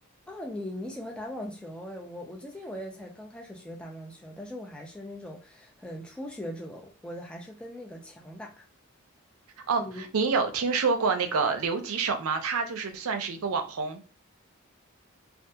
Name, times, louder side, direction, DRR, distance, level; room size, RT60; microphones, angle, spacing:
voice 1, 0.3-8.6 9.8-10.1, left 1 dB, 5° left, 0.3 m, -40 dB
voice 2, 9.7-14.0, right 4 dB, 75° right, 0.5 m, -27 dB
2.7 x 2.4 x 2.3 m
head